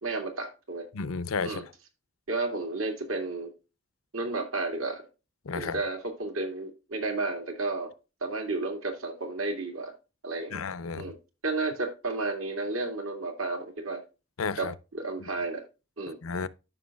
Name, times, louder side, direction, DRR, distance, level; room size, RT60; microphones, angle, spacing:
voice 1, 0.0-0.9 1.4-1.6 2.3-3.5 4.1-5.1 5.5-7.9 8.2-9.9 10.2-10.6 11.0-11.2 11.4-14.0 14.6-15.6 16.0-16.2, right 3 dB, 85° right, 2.1 m, -32 dB
voice 2, 0.9-1.6 5.4-5.8 10.5-11.0 14.4-14.7 16.2-16.5, left 5 dB, 90° left, 0.6 m, -32 dB
13.5 x 5.6 x 2.3 m
head